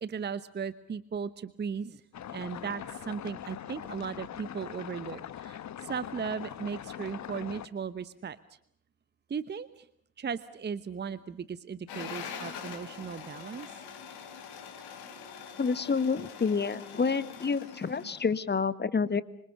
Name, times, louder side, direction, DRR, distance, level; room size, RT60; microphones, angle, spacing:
voice 1, 0.0-2.0 2.3-8.4 9.3-9.9 10.2-13.8, right 6 dB, 25° right, 16 dB, 1.0 m, -37 dB
sound 1, 2.1-7.7, left 10 dB, 40° left, 1.3 m, -42 dB
sound 2, 11.9-18.3, left 7 dB, 60° left, 4.0 m, -44 dB
voice 2, 15.6-19.2, left 5 dB, 25° left, 16 dB, 1.4 m, -28 dB
26.0 x 26.0 x 6.8 m, 0.65 s
figure-of-eight pair, 50°, 44 cm